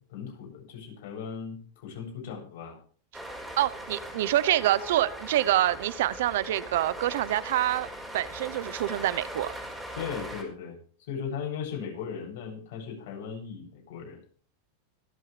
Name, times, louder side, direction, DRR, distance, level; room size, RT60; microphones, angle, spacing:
voice 1, 0.1-2.8 9.9-10.8 11.1-14.2, left 7 dB, 65° left, 7.9 m, -37 dB
sound 1, 3.1-10.4, right 1 dB, 5° right, 4.9 m, -40 dB
voice 2, 3.6-7.9 8.1-9.5, right 13 dB, 75° right, 0.9 m, -26 dB
25.0 x 8.4 x 3.4 m
supercardioid pair, 145°, 0 cm